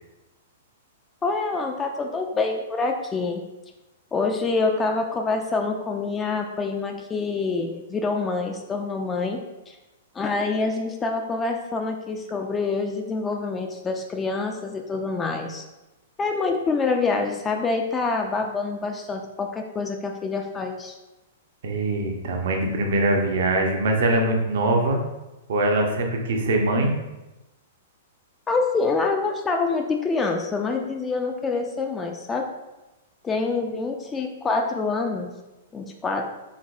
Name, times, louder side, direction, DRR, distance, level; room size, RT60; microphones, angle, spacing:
voice 1, 1.2-3.5 4.1-9.4 9.7-9.8 10.1-15.6 16.2-21.0 28.5-32.5 33.2-35.3 35.7-36.3, left 4 dB, 20° left, 3 dB, 0.3 m, -26 dB
voice 2, 21.6-25.0 25.5-26.9, right 2 dB, 60° right, 3 dB, 0.6 m, -22 dB
3.6 x 3.2 x 2.3 m, 1.0 s
figure-of-eight pair, 110°, 0 cm